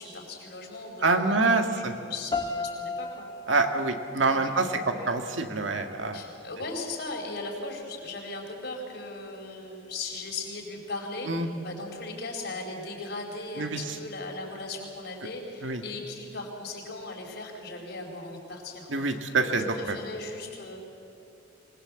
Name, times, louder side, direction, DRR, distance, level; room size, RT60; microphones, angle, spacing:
voice 1, 0.0-1.4 1.7-3.3 4.1-5.1 6.1-11.3 11.6-20.8, left 2 dB, 60° left, 1 dB, 4.7 m, -38 dB
voice 2, 1.0-1.9 3.5-6.2 11.3-11.5 13.6-13.8 15.6-15.8 18.9-20.0, right 3 dB, 85° right, 5 dB, 1.9 m, -26 dB
sound 1, 2.3-5.3, left 3 dB, 25° left, 1.1 m, -36 dB
25.5 x 20.0 x 7.7 m, 2.6 s
head